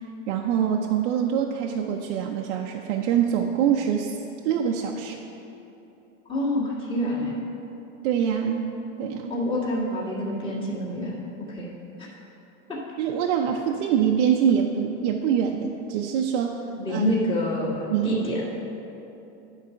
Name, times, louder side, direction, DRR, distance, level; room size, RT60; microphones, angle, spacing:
voice 1, 0.3-4.2 4.4-5.2 8.0-8.7 9.0-9.3 13.0-16.6 16.9-17.0 17.9-18.1, right 8 dB, 65° right, 1 dB, 0.6 m, -24 dB
voice 2, 6.3-7.3 9.3-11.2 11.5-11.7 12.7-12.8 16.8-18.4, equal, 15° left, -7 dB, 1.8 m, -27 dB
10.0 x 4.1 x 5.7 m, 2.9 s
supercardioid pair, 145°, 37 cm